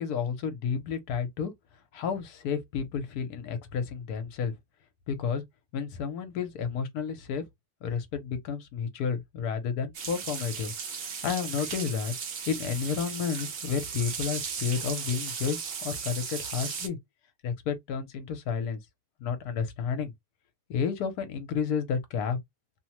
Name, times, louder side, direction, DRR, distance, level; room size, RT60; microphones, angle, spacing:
voice 1, 0.0-1.5 1.9-4.5 5.1-5.4 5.7-7.4 7.8-10.7 11.0-12.1 12.5-17.0 17.4-18.8 19.2-20.1 20.7-22.4, left 6 dB, 70° left, 1.1 m, -31 dB
sound 1, 9.9-16.9, right 6 dB, 65° right, 0.7 m, -36 dB
2.9 x 2.0 x 2.9 m
omnidirectional pair, 1.9 m